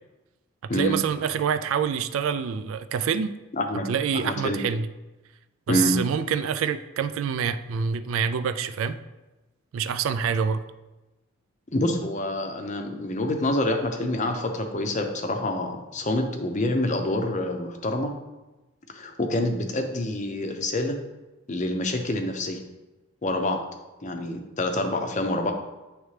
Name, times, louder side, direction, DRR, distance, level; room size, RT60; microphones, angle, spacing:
voice 1, 0.7-3.3 3.9-4.9 5.7-9.0 9.7-10.6, right 7 dB, 70° right, 11 dB, 0.3 m, -26 dB
voice 2, 3.5-3.9 4.1-4.6 5.7-6.0 11.7-18.1 18.9-21.0 21.5-22.6 23.2-23.6 24.0-25.5, left 1 dB, 35° left, 5 dB, 0.6 m, -27 dB
9.4 x 3.3 x 3.2 m, 1.1 s
head